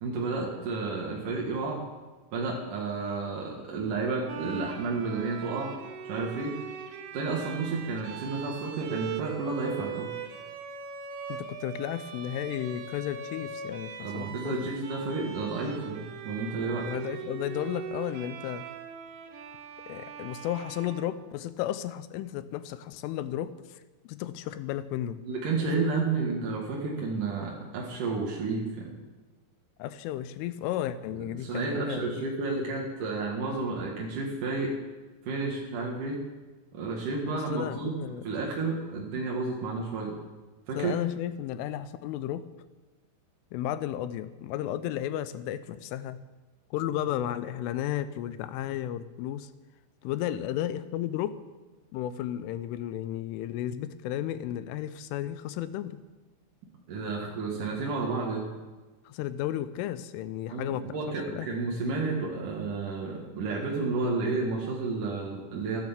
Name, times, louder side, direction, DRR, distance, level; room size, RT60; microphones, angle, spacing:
voice 1, 0.0-1.8 2.3-5.8 6.0-6.6 7.1-10.1 14.0-16.9 25.2-28.9 31.1-34.7 35.3-36.2 36.7-38.0 38.2-40.2 40.7-41.0 56.9-58.5 60.5-65.8, right 3 dB, 55° right, -2 dB, 2.5 m, -31 dB
Bowed string instrument, 4.3-21.7, right 6 dB, 85° right, 3.9 m, -41 dB
voice 2, 11.3-14.7 16.9-18.7 19.9-25.2 29.8-32.3 37.3-38.3 40.8-42.5 43.5-46.2 46.7-49.5 50.0-51.4 51.9-56.0 59.1-61.0 61.3-61.5, left 12 dB, 80° left, 13 dB, 3.1 m, -33 dB
14.0 x 12.0 x 7.3 m, 1.2 s
omnidirectional pair, 5.9 m